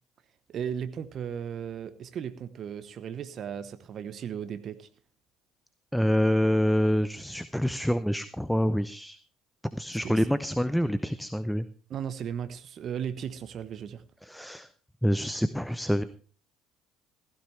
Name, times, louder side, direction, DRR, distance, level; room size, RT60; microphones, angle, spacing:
voice 1, 0.5-4.9 10.0-10.1 11.9-14.0, right 8 dB, 50° right, 12 dB, 1.0 m, -36 dB
voice 2, 5.9-9.2 9.7-11.7 14.2-14.7 15.0-16.0, equal, ahead, 14 dB, 0.7 m, -26 dB
16.0 x 13.0 x 3.3 m, 0.40 s
hypercardioid pair, 60°, 0 cm